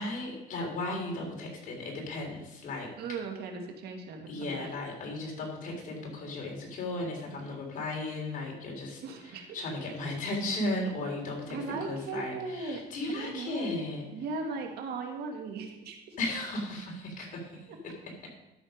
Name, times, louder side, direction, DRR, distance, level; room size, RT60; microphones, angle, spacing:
voice 1, 0.0-2.9 4.3-14.0 16.2-18.3, left 2 dB, 55° left, 0 dB, 3.8 m, -36 dB
voice 2, 3.0-4.7 9.0-9.5 9.8-9.9 11.5-12.8 13.2-13.8 14.1-16.0, right 3 dB, 75° right, 3 dB, 1.9 m, -37 dB
12.5 x 6.7 x 5.2 m, 0.95 s
cardioid pair, 110°, 17 cm